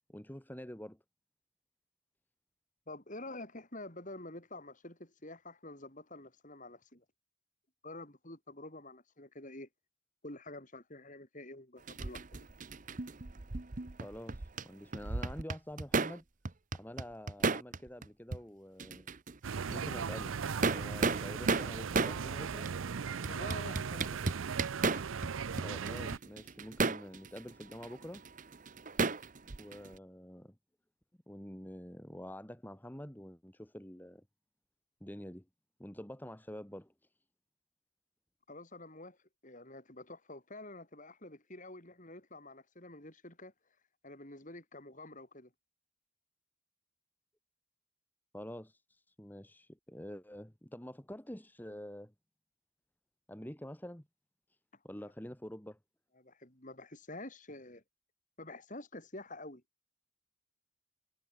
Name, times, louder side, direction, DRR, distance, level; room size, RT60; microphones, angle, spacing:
voice 1, 0.1-1.0 14.0-16.2 16.7-19.2 19.7-20.4 20.7-22.7 25.6-28.2 29.6-30.6 31.3-34.2 35.0-35.4 35.8-36.9 48.3-52.1 53.3-54.1 54.8-55.8, equal, 10° left, 1.5 m, -47 dB
voice 2, 2.9-7.0 7.8-9.7 10.2-12.4 23.2-24.2 38.5-39.2 39.4-43.5 44.0-45.5 56.2-57.8 58.4-59.6, left 2 dB, 40° left, 5.5 m, -48 dB
sound 1, 11.9-14.6 14.9-16.2 16.4-18.1 18.3-18.4 18.8-19.4 19.7-19.8 20.4-22.2 22.6-22.7 23.2-25.3 25.6-29.9, right 4 dB, 40° right, 0.9 m, -34 dB
sound 2, 19.4-26.2, right 6 dB, 75° right, 0.6 m, -38 dB
head